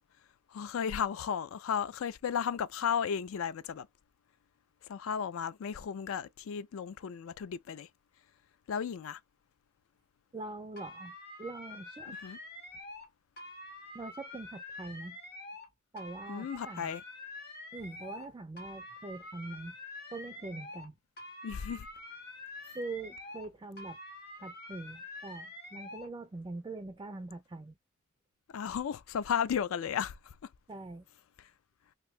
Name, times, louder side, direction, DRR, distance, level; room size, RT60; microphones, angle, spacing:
voice 1, 0.5-3.9 4.9-7.9 8.7-9.2 12.2-12.4 16.3-17.0 21.4-21.9 28.5-30.3 31.4-31.5, left 7 dB, 65° left, 0.3 m, -34 dB
voice 2, 10.3-12.2 13.9-15.2 15.9-16.9 17.7-19.8 20.1-20.9 22.7-24.0 24.4-27.7 30.7-31.0, right 2 dB, 20° right, 0.3 m, -43 dB
sound 1, 10.8-13.1 13.4-15.7 16.0-18.3 18.6-20.9 21.2-23.5 23.8-26.1, left 2 dB, 50° left, 1.4 m, -47 dB
2.9 x 2.6 x 3.1 m
head